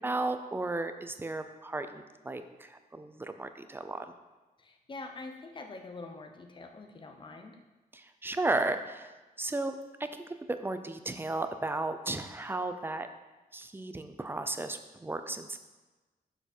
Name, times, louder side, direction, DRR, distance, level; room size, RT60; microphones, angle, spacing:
voice 1, 0.0-4.1 7.9-9.1 9.4-9.7 10.0-10.1 10.5-13.1 13.5-15.6, right 2 dB, 15° right, 9 dB, 0.4 m, -34 dB
voice 2, 4.6-7.6, left 3 dB, 30° left, 5 dB, 0.7 m, -45 dB
6.9 x 6.7 x 4.3 m, 1.2 s
wide cardioid pair, 170°, 16 cm